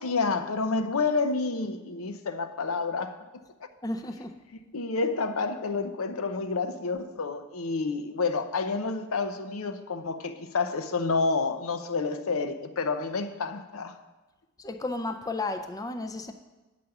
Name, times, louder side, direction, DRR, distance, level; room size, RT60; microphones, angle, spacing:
voice 1, 0.0-3.2 4.7-14.0, left 4 dB, 85° left, 8 dB, 0.7 m, -29 dB
voice 2, 3.8-4.3 14.6-16.3, left 2 dB, 15° left, 6 dB, 0.5 m, -33 dB
9.2 x 5.1 x 7.0 m, 1.1 s
head